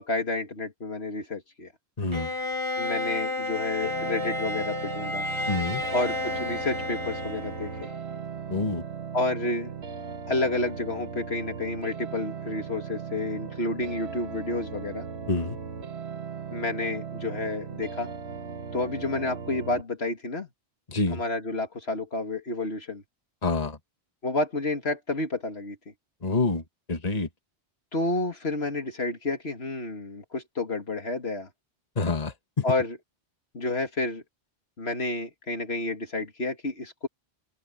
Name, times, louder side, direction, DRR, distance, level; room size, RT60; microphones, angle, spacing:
voice 1, 0.0-1.7 2.8-5.3 5.9-7.9 9.1-9.7 10.3-15.1 16.5-18.1 18.7-20.5 21.1-23.0 24.2-25.8 27.9-31.5 32.6-33.0 33.5-34.2 34.8-37.1, left 2 dB, 70° left, 2.6 m, -30 dB
voice 2, 2.0-2.3 5.5-5.8 8.5-8.8 15.3-15.6 20.9-21.2 23.4-23.8 26.2-26.6 26.9-27.3 32.0-32.6, left 3 dB, 40° left, 1.8 m, -27 dB
Bowed string instrument, 2.1-8.2, left 2 dB, 25° right, 2.3 m, -32 dB
sound 1, 3.8-19.8, right 6 dB, 80° right, 1.5 m, -38 dB
open air
omnidirectional pair, 1.1 m